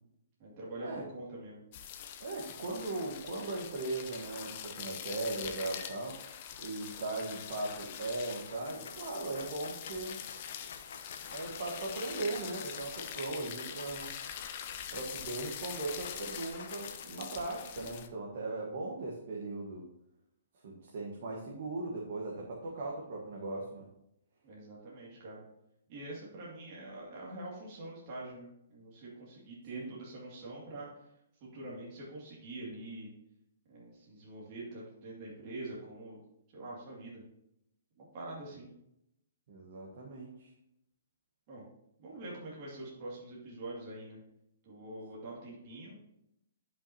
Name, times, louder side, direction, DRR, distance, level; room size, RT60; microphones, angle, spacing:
voice 1, 0.4-1.6 24.4-25.4 25.9-30.9 31.4-33.1 33.7-36.2 36.5-37.2 38.0-38.7 41.5-41.6 42.0-44.2 44.6-46.0, right 2 dB, 35° right, -6 dB, 2.2 m, -45 dB
sound 1, 1.7-18.1, left 9 dB, 35° left, 0.6 m, -44 dB
voice 2, 2.2-6.2 6.6-10.2 11.3-14.2 14.9-19.9 20.6-23.9 29.7-29.9 39.5-40.5, right 2 dB, 50° right, -2 dB, 1.3 m, -38 dB
sound 2, 7.6-7.9 8.2-17.0, left 5 dB, 70° left, 0.9 m, -51 dB
11.0 x 5.7 x 2.8 m, 0.82 s
hypercardioid pair, 165°, 0 cm